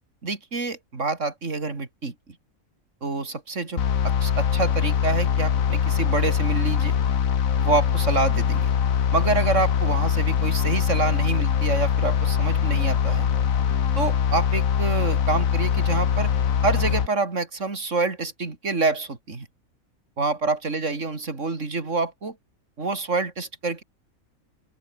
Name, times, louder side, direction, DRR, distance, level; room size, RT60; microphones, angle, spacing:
voice 1, 0.2-2.1 3.0-6.9 7.6-8.7 9.1-13.3 13.9-16.3 16.6-19.5 20.2-22.3 22.8-23.8, right 3 dB, 60° right, 3.4 m, -27 dB
sound 1, 3.8-17.1, left 8 dB, 70° left, 1.6 m, -22 dB
open air
omnidirectional pair, 1.5 m